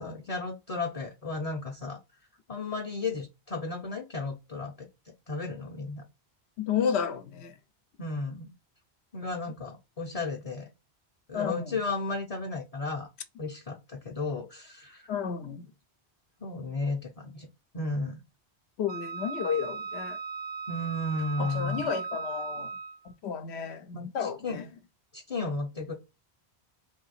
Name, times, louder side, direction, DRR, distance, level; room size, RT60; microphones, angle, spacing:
voice 1, 0.0-2.0 2.5-6.0 8.0-8.5 9.1-10.7 11.3-13.1 13.4-15.1 16.4-17.5 17.7-18.2 20.7-21.9 23.9-24.6 25.1-25.9, left 3 dB, 40° left, 0.7 m, -34 dB
voice 2, 6.6-7.5 11.3-11.8 15.1-15.7 18.8-20.2 21.4-22.7 23.0-24.7, left 7 dB, 80° left, 0.9 m, -32 dB
Wind instrument woodwind instrument, 18.9-23.1, right 5 dB, 70° right, 0.8 m, -37 dB
3.6 x 2.7 x 4.0 m
omnidirectional pair, 1.1 m